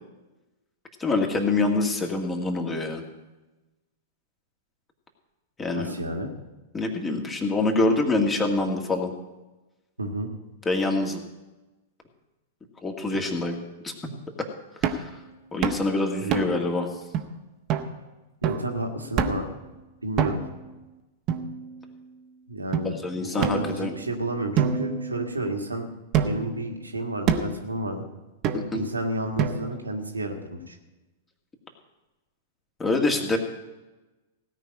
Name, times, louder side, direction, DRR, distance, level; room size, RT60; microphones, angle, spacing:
voice 1, 1.0-3.0 5.6-5.9 6.7-9.1 10.7-11.2 12.8-13.6 13.8-13.9 14.8-15.1 15.5-16.9 23.0-23.9 28.5-28.8 32.8-33.4, left 2 dB, 15° left, 3 dB, 2.2 m, -25 dB
voice 2, 5.7-6.3 10.0-10.3 13.1-13.2 16.2-16.5 18.4-19.5 20.0-20.4 22.5-25.9 26.2-28.0 28.7-30.8, right 1 dB, 85° right, 2 dB, 1.8 m, -31 dB
sound 1, 14.8-15.1 15.6-15.9 16.3-16.7 17.1-17.2 17.7-17.9 18.4-18.7 19.2-19.5 20.2-20.6 21.3-22.0 22.7-22.8 23.4-24.1 24.6-25.6 26.1-26.6 27.3-27.6 28.4-28.9 29.4-29.9, right 7 dB, 35° right, 1.2 m, -27 dB
17.0 x 5.7 x 8.8 m, 1.1 s
figure-of-eight pair, 100°, 0 cm